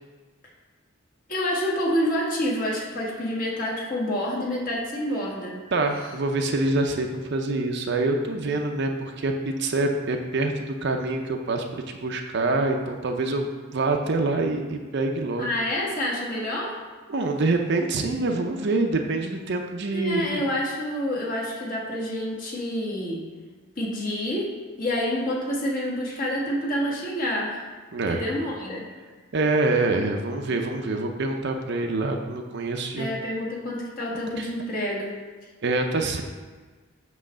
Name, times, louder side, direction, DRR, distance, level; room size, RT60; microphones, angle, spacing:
voice 1, 1.3-5.6 15.4-16.8 19.9-23.3 23.8-27.7 28.1-28.9 33.0-35.2, left 1 dB, 40° left, -4 dB, 1.5 m, -28 dB
voice 2, 5.7-15.5 17.1-20.4 27.9-28.2 29.3-33.1 34.4-34.5 35.6-36.2, right 2 dB, 55° right, 3 dB, 0.6 m, -26 dB
7.6 x 3.1 x 6.2 m, 1.4 s
head